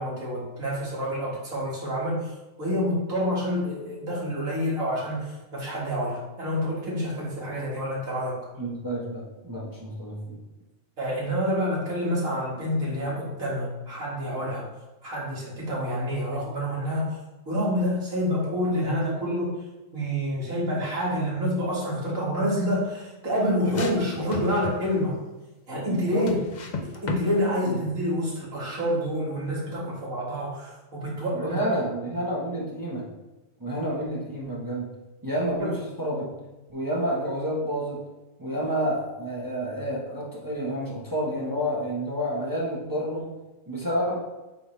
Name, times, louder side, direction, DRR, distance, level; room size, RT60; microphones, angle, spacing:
voice 1, 0.0-2.3 2.6-8.4 11.0-14.7 15.0-17.2 17.5-19.5 19.9-25.2 25.7-26.4 27.0-31.7 35.6-35.7, equal, 85° right, -6 dB, 2.5 m, -28 dB
voice 2, 8.5-10.4 25.9-26.3 27.6-27.8 31.3-33.1 33.6-34.9 35.2-38.1 38.4-43.3 43.7-44.2, equal, 15° right, -5 dB, 1.0 m, -29 dB
sound 1, 23.7-24.9 26.3-27.3, left 3 dB, 45° left, 0.6 m, -33 dB
8.5 x 3.8 x 3.2 m, 1.1 s
omnidirectional pair, 1.4 m